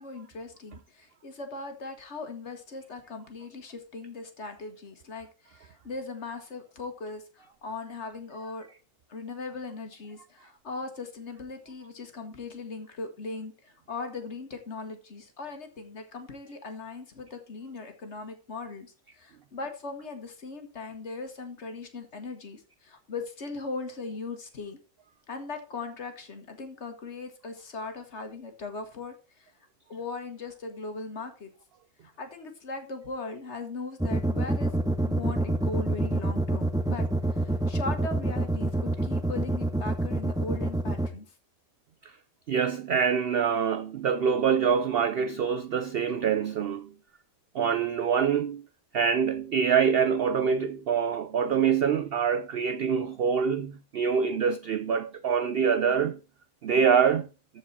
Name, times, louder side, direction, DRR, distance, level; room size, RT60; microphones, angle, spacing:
voice 1, 0.0-8.7 9.1-24.8 25.3-29.5 29.9-31.5 32.0-34.7 35.1-41.2, left 3 dB, 50° left, 1.7 m, -39 dB
sound 1, 34.0-41.1, right 2 dB, 5° right, 0.6 m, -26 dB
voice 2, 42.5-46.9 47.5-48.7 48.9-56.2 56.6-57.3, right 7 dB, 75° right, 0.5 m, -25 dB
14.0 x 4.8 x 4.2 m
omnidirectional pair, 1.6 m